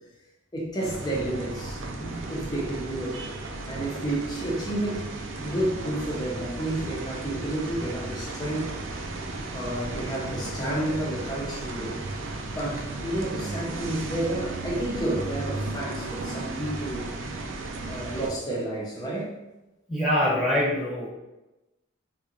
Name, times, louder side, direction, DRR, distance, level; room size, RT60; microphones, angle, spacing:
voice 1, 0.5-1.8 2.3-3.3 3.7-5.1 5.4-9.0 9.5-12.0 12.5-17.1 17.9-19.4, right 1 dB, 20° left, -4 dB, 0.8 m, -31 dB
sound 1, 0.8-18.3, right 2 dB, 80° right, 0.5 m, -35 dB
voice 2, 2.0-2.3 9.5-9.6 19.9-21.1, left 1 dB, 5° right, -8 dB, 1.2 m, -25 dB
3.4 x 3.0 x 2.5 m, 0.99 s
head